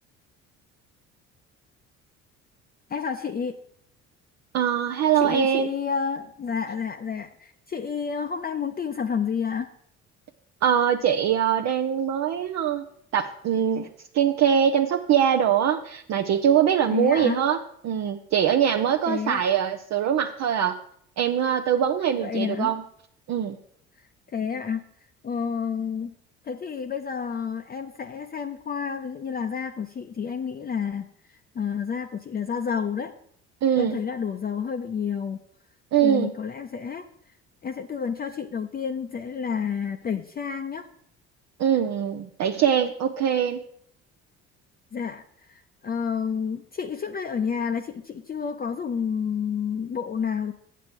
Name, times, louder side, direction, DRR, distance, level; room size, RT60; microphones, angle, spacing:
voice 1, 2.9-3.6 5.2-9.7 16.9-17.4 19.1-19.4 22.2-22.7 24.0-24.8 25.2-26.1 26.4-33.1 33.8-35.4 36.0-37.1 37.6-40.9 44.9-50.5, left 6 dB, 30° left, 6 dB, 0.6 m, -30 dB
voice 2, 4.5-5.7 10.6-12.8 13.1-13.9 14.1-17.6 17.8-20.8 21.2-22.8 23.3-23.6 33.6-34.0 35.9-36.3 41.6-43.6, right 9 dB, 50° right, 3 dB, 0.7 m, -22 dB
7.5 x 7.4 x 5.2 m, 0.69 s
hypercardioid pair, 60°, 33 cm